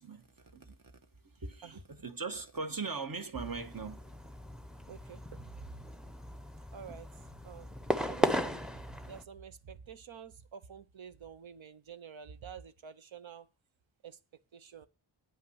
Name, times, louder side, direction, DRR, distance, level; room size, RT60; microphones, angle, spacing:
voice 1, 0.0-4.0, right 4 dB, 45° right, 1.2 m, -40 dB
sound 1, 3.4-9.2, equal, ahead, 0.7 m, -36 dB
voice 2, 4.9-5.8 6.7-7.1 7.4-7.7 8.0-8.6 9.0-13.5 14.0-14.2 14.5-14.9, right 7 dB, 75° right, 0.8 m, -48 dB
8.9 x 5.7 x 6.2 m
cardioid pair, 45°, 48 cm